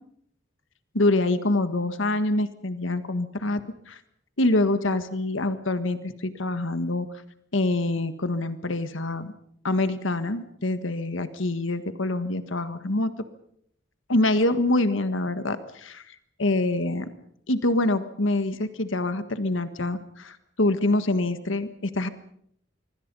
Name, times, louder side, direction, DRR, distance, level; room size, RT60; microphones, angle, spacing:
voice 1, 0.9-3.6 3.9-4.0 4.4-7.1 7.5-9.3 9.6-13.1 14.1-17.1 17.5-22.1, left 2 dB, 85° left, 11 dB, 1.6 m, -25 dB
25.0 x 24.5 x 5.5 m, 0.68 s
head